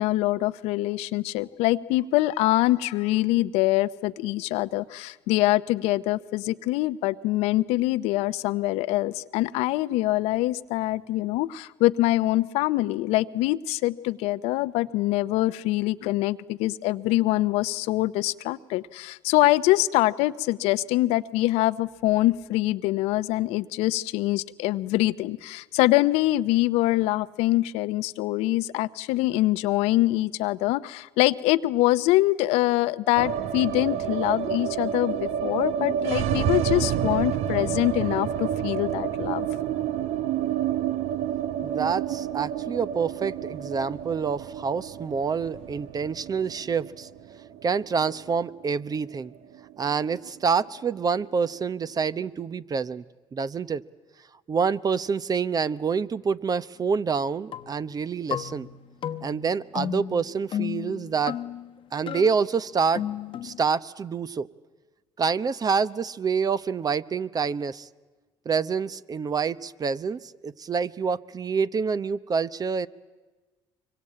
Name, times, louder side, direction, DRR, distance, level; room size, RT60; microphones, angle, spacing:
voice 1, 0.0-39.5, left 17 dB, 80° left, 14 dB, 0.8 m, -24 dB
sound 1, 33.1-49.3 49.5-49.6 49.9-50.6, right 9 dB, 70° right, 0.9 m, -29 dB
voice 2, 41.6-47.1 47.6-49.3 49.8-53.0 53.3-53.8 54.5-58.7 59.2-61.4 61.9-63.0 63.4-64.5 65.2-67.9 68.4-72.9, right 5 dB, 35° right, 16 dB, 0.9 m, -27 dB
sound 2, 57.5-58.0 58.3-61.7 62.1-62.3 62.9-63.6, left 9 dB, 55° left, 1.1 m, -34 dB
24.0 x 23.5 x 8.7 m, 1.3 s
supercardioid pair, 75°, 11 cm